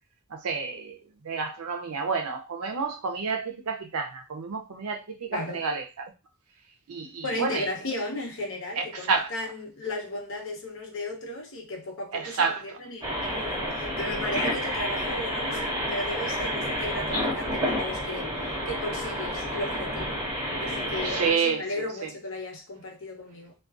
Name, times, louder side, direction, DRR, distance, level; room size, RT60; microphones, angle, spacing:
voice 1, 0.3-1.0 1.2-6.1 6.9-7.7 8.8-9.3 12.1-12.8 21.0-22.1, right 5 dB, 80° right, 0.5 m, -30 dB
voice 2, 7.2-20.2 20.6-23.5, left 1 dB, 60° left, 0.8 m, -35 dB
sound 1, 13.0-21.3, equal, 15° right, 0.9 m, -30 dB
2.3 x 2.2 x 2.4 m
head